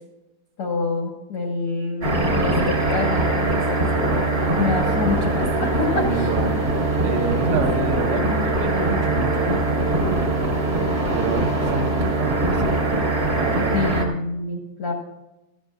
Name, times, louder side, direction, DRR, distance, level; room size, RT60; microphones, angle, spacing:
voice 1, 0.6-4.2 4.6-6.3 13.7-14.9, left 3 dB, 85° left, 1 dB, 1.2 m, -27 dB
sound 1, 2.0-14.0, right 2 dB, 50° right, 1.0 m, -22 dB
voice 2, 5.9-6.6 7.0-9.8 11.1-12.9 13.4-13.7, right 4 dB, 85° right, 4 dB, 3.4 m, -28 dB
16.0 x 15.0 x 2.5 m, 0.98 s
omnidirectional pair, 4.9 m